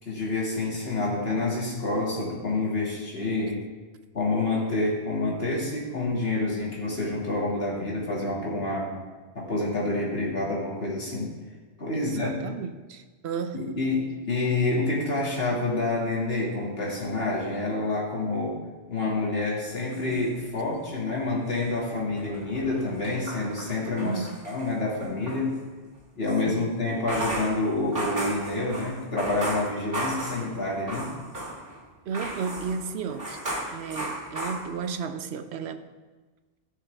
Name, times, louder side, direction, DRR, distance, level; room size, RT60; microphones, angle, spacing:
voice 1, 0.0-3.7 4.1-8.9 9.3-11.3 11.8-12.4 13.5-18.6 18.9-25.5 26.2-31.1, left 2 dB, 65° left, -4 dB, 2.5 m, -28 dB
voice 2, 11.9-13.8 24.0-24.4 26.5-26.7 32.1-33.4 33.7-35.9, right 6 dB, 80° right, 10 dB, 0.9 m, -33 dB
sound 1, 19.7-20.9 21.3-25.4 26.9-31.8 32.1-35.1, right 1 dB, 60° right, 2.3 m, -35 dB
14.5 x 6.4 x 3.4 m, 1.3 s
omnidirectional pair, 1.1 m